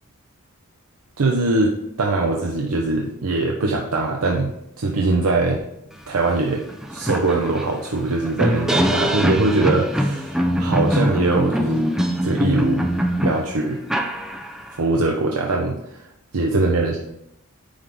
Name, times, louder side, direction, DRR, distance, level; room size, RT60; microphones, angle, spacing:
voice 1, 1.2-5.6 6.1-6.6 6.9-11.8 12.2-12.9 13.2-13.8 14.8-16.1 16.3-17.0, right 3 dB, 70° right, 0 dB, 0.7 m, -22 dB
sound 1, 6.3-6.4 6.7-14.8, equal, ahead, 0.5 m, -22 dB
9.7 x 3.5 x 3.8 m, 0.80 s
head